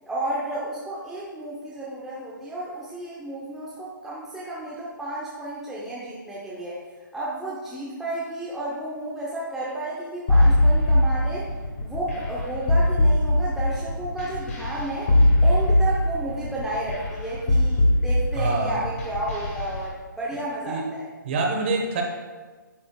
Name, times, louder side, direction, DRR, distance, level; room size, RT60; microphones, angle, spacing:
voice 1, 0.0-6.8 7.1-11.5 11.8-15.1 15.4-21.0, right 1 dB, ahead, -8 dB, 0.8 m, -32 dB
sound 1, 10.3-19.8, left 1 dB, 40° left, 1.9 m, -21 dB
voice 2, 18.3-18.8 20.3-20.8 21.2-22.0, right 3 dB, 35° right, 2 dB, 1.4 m, -26 dB
10.0 x 8.5 x 2.3 m, 1.4 s
hypercardioid pair, 160°, 11 cm